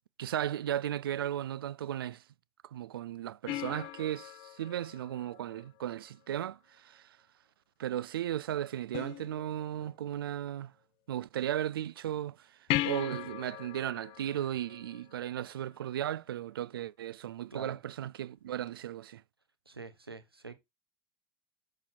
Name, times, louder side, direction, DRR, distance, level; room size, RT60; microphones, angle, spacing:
voice 1, 0.2-2.2 2.6-7.2 7.8-10.7 11.1-12.6 12.8-19.2, right 11 dB, 70° right, 0.4 m, -36 dB
sound 1, 3.5-6.1 8.9-9.9 12.7-15.6 18.7-18.8, left 16 dB, 45° left, 0.6 m, -38 dB
voice 2, 19.7-20.5, right 3 dB, 85° right, 0.9 m, -45 dB
6.6 x 4.3 x 4.2 m
figure-of-eight pair, 75°, 12 cm